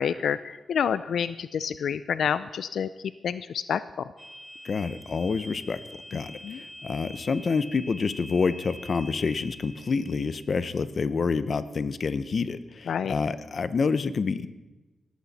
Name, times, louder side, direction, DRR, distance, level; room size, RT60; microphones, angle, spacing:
voice 1, 0.0-2.9 3.2-3.8 6.4-6.6 12.9-13.1, left 7 dB, 80° left, 14 dB, 0.4 m, -28 dB
sound 1, 4.2-10.5, equal, 5° left, 1.8 m, -45 dB
voice 2, 4.6-5.8 6.1-14.5, left 5 dB, 45° left, 14 dB, 0.8 m, -28 dB
19.0 x 14.5 x 4.2 m, 1.1 s
wide cardioid pair, 130°, 0 cm